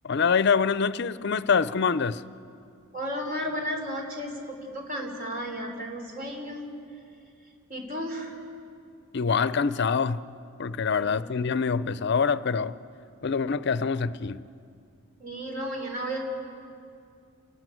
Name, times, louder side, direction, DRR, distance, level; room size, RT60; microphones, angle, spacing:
voice 1, 0.0-2.2 9.1-10.2 10.6-12.8 13.2-14.4, left 5 dB, 55° left, 0.5 m, -25 dB
voice 2, 2.9-6.7 7.7-8.4 11.0-11.1 15.2-16.2, equal, 40° right, 3.6 m, -33 dB
29.5 x 12.5 x 9.2 m
head